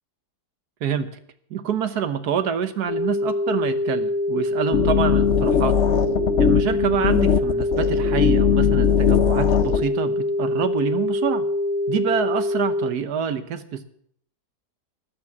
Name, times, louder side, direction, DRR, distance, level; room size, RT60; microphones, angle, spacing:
voice 1, 1.5-5.7 6.4-11.5 11.9-13.8, right 8 dB, 75° right, 11 dB, 1.6 m, -26 dB
sound 1, 2.9-12.9, left 1 dB, 85° left, 2.2 m, -24 dB
sound 2, 4.7-9.8, left 8 dB, 55° left, 1.0 m, -20 dB
13.5 x 10.5 x 7.3 m, 0.69 s
omnidirectional pair, 1.7 m